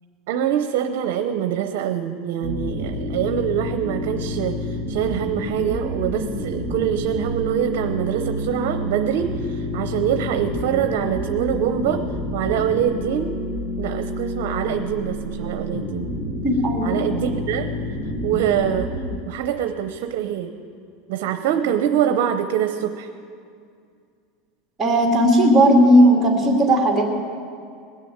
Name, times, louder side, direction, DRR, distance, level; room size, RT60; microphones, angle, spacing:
voice 1, 0.3-12.0 12.3-13.3 13.8-16.0 16.8-17.7 18.2-18.9 19.3-20.5 21.1-23.1, right 9 dB, 70° right, 7 dB, 0.8 m, -24 dB
sound 1, 2.4-19.2, equal, 35° left, 1.8 m, -29 dB
voice 2, 16.4-17.0 24.8-27.0, equal, 20° right, 0 dB, 2.4 m, -16 dB
20.5 x 6.9 x 8.7 m, 2.3 s
supercardioid pair, 135°, 0 cm